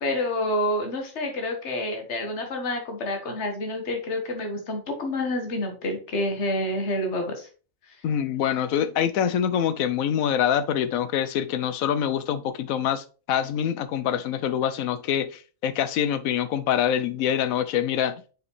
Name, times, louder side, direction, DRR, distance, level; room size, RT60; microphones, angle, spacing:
voice 1, 0.0-7.5, left 1 dB, 55° left, 1.6 m, -28 dB
voice 2, 8.0-18.1, left 9 dB, 85° left, 1.1 m, -25 dB
6.3 x 4.8 x 3.1 m
omnidirectional pair, 1.4 m